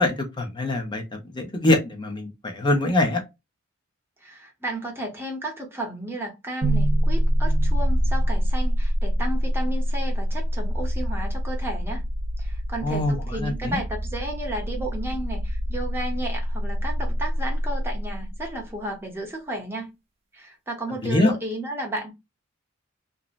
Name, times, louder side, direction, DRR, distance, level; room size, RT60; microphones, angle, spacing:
voice 1, 0.0-3.2 12.8-13.8 21.0-21.3, left 2 dB, 20° left, 0.6 m, -24 dB
voice 2, 4.2-12.0 12.4-19.9 20.3-22.1, right 1 dB, 10° right, 0.7 m, -33 dB
sound 1, 6.6-18.7, equal, 30° right, 0.3 m, -25 dB
2.8 x 2.0 x 2.4 m
head